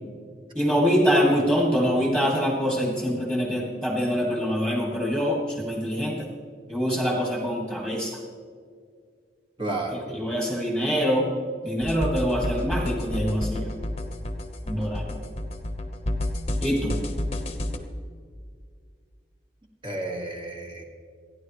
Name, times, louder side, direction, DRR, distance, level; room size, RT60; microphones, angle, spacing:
voice 1, 0.5-6.3 6.7-8.2 10.1-11.2 11.6-13.7 14.7-15.2 16.6-16.9, equal, 10° right, -2 dB, 2.3 m, -24 dB
voice 2, 9.6-10.2 19.8-20.8, right 2 dB, 30° right, 0 dB, 1.7 m, -31 dB
sound 1, 11.8-17.8, left 1 dB, 35° left, 1.1 m, -30 dB
28.0 x 10.5 x 3.2 m, 2.1 s
head